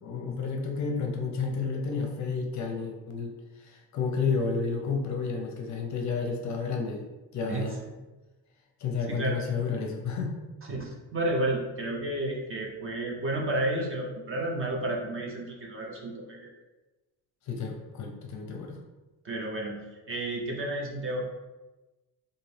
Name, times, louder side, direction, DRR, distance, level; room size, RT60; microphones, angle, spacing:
voice 1, 0.0-7.0 7.3-7.8 8.8-10.3 17.5-18.8, left 5 dB, 45° left, 2 dB, 0.5 m, -31 dB
voice 2, 7.5-7.9 9.0-9.4 10.7-16.5 19.2-21.3, right 1 dB, 35° right, -1 dB, 0.5 m, -31 dB
3.9 x 2.6 x 3.2 m, 1.1 s
cardioid pair, 170°, 40 cm